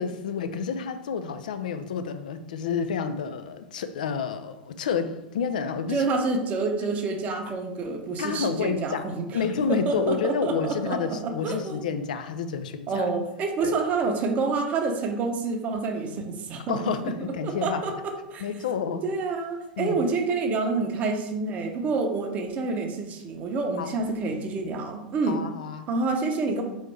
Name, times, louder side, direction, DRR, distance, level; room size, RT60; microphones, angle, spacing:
voice 1, 0.0-6.0 8.2-13.0 13.6-13.8 16.7-17.8 18.4-19.1 19.8-20.0 23.8-23.9 25.3-25.9, left 6 dB, 65° left, 9 dB, 0.4 m, -29 dB
voice 2, 5.9-9.4 9.7-11.8 12.9-17.1 17.4-18.5 19.0-25.4 25.9-26.6, right 3 dB, 30° right, 3 dB, 0.7 m, -28 dB
4.1 x 3.1 x 3.2 m, 0.93 s
figure-of-eight pair, 90°, 5 cm